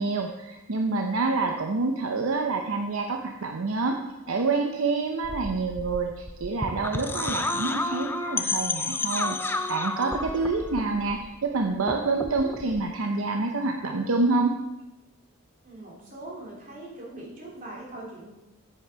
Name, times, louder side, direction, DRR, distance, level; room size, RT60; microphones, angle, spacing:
voice 1, 0.0-4.0 4.3-14.6, right 3 dB, 70° right, 3 dB, 0.7 m, -27 dB
sound 1, 5.2-11.5 11.7-12.8, left 3 dB, 10° left, 0.4 m, -31 dB
voice 2, 15.6-18.3, right 1 dB, 40° right, -4 dB, 2.9 m, -41 dB
8.1 x 7.7 x 4.6 m, 1.0 s
head